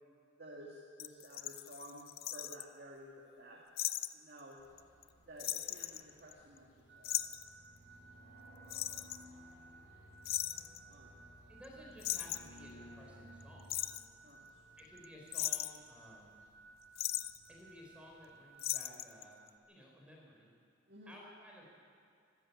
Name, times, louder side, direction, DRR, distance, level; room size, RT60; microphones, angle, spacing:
voice 1, 0.4-3.6 4.1-4.6 5.3-7.1 10.9-11.3 14.2-14.5 20.9-21.2, right 1 dB, 50° right, -3 dB, 2.3 m, -53 dB
sound 1, 1.0-2.6 3.8-4.1 4.4-4.5 4.8-5.1 5.4-6.6 7.0-7.5 8.7-9.3 10.3-10.8 11.6-11.7 12.0-12.6 13.4-14.0 14.8-15.1 15.3-15.9 17.0-17.4 18.6-19.2 19.5-19.6, left 13 dB, 50° left, 0.6 m, -38 dB
sound 2, 4.6-18.4, equal, 85° left, 6.1 m, -60 dB
sound 3, 6.9-19.6, right 3 dB, 85° right, 3.0 m, -60 dB
voice 2, 11.5-13.8 14.8-16.4 17.5-20.5 21.1-21.6, equal, 5° right, -2 dB, 4.4 m, -56 dB
25.5 x 13.0 x 8.5 m, 2.3 s
head